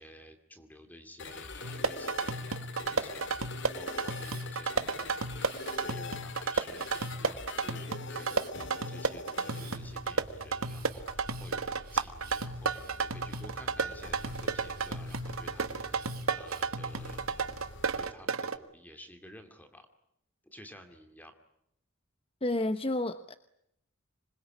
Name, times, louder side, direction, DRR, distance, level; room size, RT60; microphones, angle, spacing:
voice 1, 0.0-17.5 17.9-19.9 20.4-21.3, equal, 10° left, 6 dB, 2.3 m, -52 dB
sound 1, 1.2-18.1, left 3 dB, 60° left, 2.1 m, -45 dB
sound 2, 1.6-18.6, right 4 dB, 85° right, 1.6 m, -33 dB
Camera, 4.0-4.5 5.4-6.1 6.7-7.3 8.2-8.5 9.4-9.8 10.6-13.6 14.1-15.2 16.0-16.8 17.4-17.9, right 10 dB, 45° right, 3.0 m, -53 dB
voice 2, 22.4-23.3, left 1 dB, 25° left, 11 dB, 1.0 m, -30 dB
26.5 x 21.5 x 9.7 m, 0.75 s
head